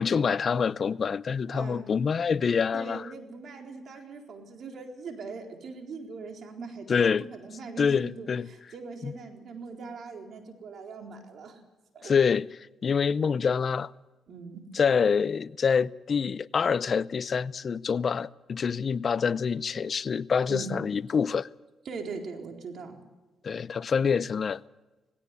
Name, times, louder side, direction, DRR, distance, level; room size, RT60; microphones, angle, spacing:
voice 1, 0.0-3.1 6.9-7.3 7.8-8.5 9.0-9.1 12.0-13.9 14.7-21.5 23.4-24.6, left 6 dB, 45° left, 0.6 m, -26 dB
voice 2, 1.5-1.9 2.7-11.6 11.9-12.1 14.3-14.6 20.5-20.7 21.9-23.0, right 4 dB, 60° right, 4.1 m, -41 dB
19.0 x 17.0 x 8.2 m
cardioid pair, 90°, 0 cm